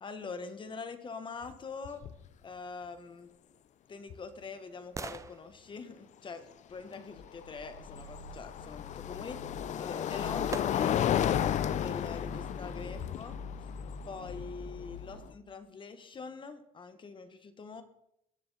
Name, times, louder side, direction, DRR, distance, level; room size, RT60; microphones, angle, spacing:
voice 1, 0.0-2.0 2.4-3.3 3.9-11.2 11.7-13.4 14.1-17.8, left 4 dB, 30° left, 10 dB, 1.1 m, -44 dB
sound 1, 1.4-1.5 1.8-2.3 4.1-4.2 7.2-15.3, left 10 dB, 45° left, 0.6 m, -33 dB
sound 2, 3.4-7.5 9.6-9.7 10.5-11.2 11.7-11.8, right 4 dB, 20° right, 0.5 m, -47 dB
sound 3, 7.2-9.7 10.1-10.6 11.0-15.3, left 4 dB, 75° left, 1.6 m, -45 dB
19.0 x 6.7 x 4.0 m, 0.79 s
cardioid pair, 125°, 17 cm